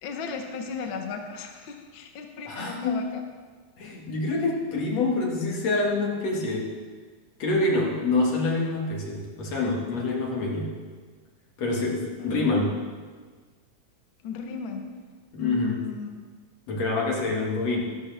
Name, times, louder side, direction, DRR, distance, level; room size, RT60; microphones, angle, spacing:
voice 1, 0.0-3.2 12.2-12.7 14.2-15.0 15.4-16.1, left 5 dB, 80° left, 3 dB, 1.1 m, -36 dB
voice 2, 2.5-3.1 3.8-6.7 7.4-10.7 11.6-12.7 15.3-15.8 16.7-17.8, left 2 dB, 55° left, -2 dB, 2.9 m, -26 dB
13.5 x 13.0 x 3.4 m, 1.5 s
omnidirectional pair, 3.7 m